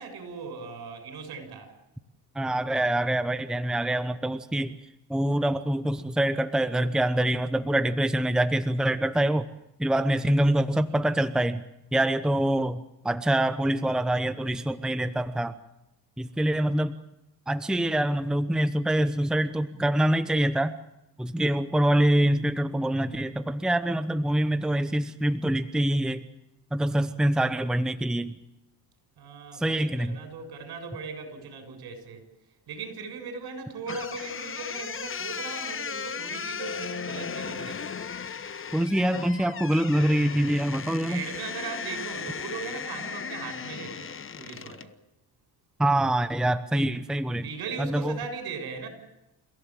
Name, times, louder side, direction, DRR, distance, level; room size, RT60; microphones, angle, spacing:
voice 1, 0.0-1.7 29.2-32.2 32.7-38.0 41.1-44.9 47.4-48.9, right 4 dB, 70° right, 6 dB, 7.3 m, -38 dB
voice 2, 2.3-4.8 5.1-9.5 9.8-11.6 11.9-15.6 16.2-17.0 17.5-20.8 21.2-26.2 26.7-28.4 29.5-30.2 38.7-41.2 45.8-47.5 47.8-48.2, right 1 dB, ahead, 11 dB, 0.9 m, -25 dB
sound 1, 33.9-44.9, left 6 dB, 30° left, 1.1 m, -36 dB
29.5 x 16.5 x 7.5 m, 0.91 s
cardioid pair, 115°, 41 cm